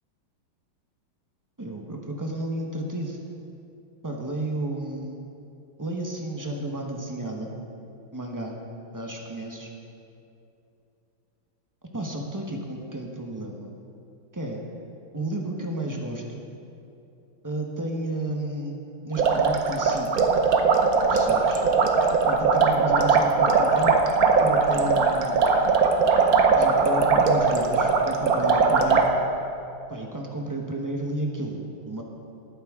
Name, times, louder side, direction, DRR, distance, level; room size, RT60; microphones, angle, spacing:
voice 1, 1.6-3.2 4.0-5.2 5.8-7.5 8.1-8.6 8.9-9.7 11.9-13.7 14.3-14.6 15.1-16.5 17.4-18.8 19.0-20.2 21.1-21.6 22.3-24.0 24.4-25.4 26.6-29.1 29.9-32.0, right 1 dB, 20° right, 0 dB, 0.5 m, -32 dB
sound 1, 19.1-29.1, right 4 dB, 55° right, 1.1 m, -20 dB
18.5 x 9.4 x 3.7 m, 2.7 s
omnidirectional pair, 2.3 m